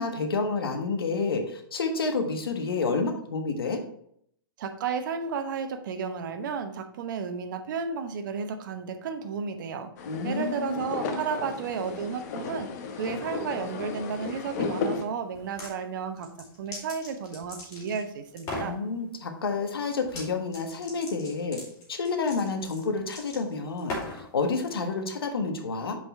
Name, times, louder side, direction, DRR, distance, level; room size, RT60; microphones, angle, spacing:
voice 1, 0.0-3.8 10.1-10.8 11.1-11.2 18.6-21.6 21.9-26.0, left 4 dB, 80° left, 5 dB, 1.4 m, -29 dB
voice 2, 4.6-9.9 10.2-12.7 12.9-16.3 16.6-18.8, right 6 dB, 55° right, 8 dB, 1.0 m, -33 dB
sound 1, 10.0-15.1, left 4 dB, 45° left, 1.0 m, -34 dB
sound 2, 15.3-15.7 16.2-18.0 18.4-18.8 20.0-20.3 20.5-24.3, left 2 dB, 25° left, 3.0 m, -38 dB
6.0 x 5.0 x 4.4 m, 0.68 s
hypercardioid pair, 130°, 12 cm